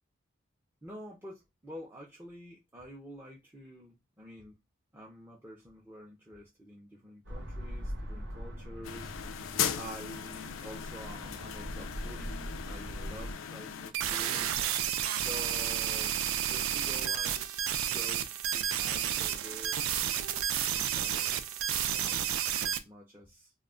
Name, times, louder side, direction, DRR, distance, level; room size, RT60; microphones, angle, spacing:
voice 1, 0.8-4.5 4.9-14.5 15.1-16.1 16.4-17.4 17.7-19.8 20.6-21.4 21.8-22.2 22.6-23.5, equal, 10° right, 0.4 m, -48 dB
sound 1, 7.2-13.3, equal, 60° right, 0.8 m, -42 dB
sound 2, 8.8-13.9, left 8 dB, 75° left, 0.3 m, -38 dB
sound 3, 13.9-22.8, right 10 dB, 90° right, 0.3 m, -31 dB
2.2 x 2.0 x 3.6 m
head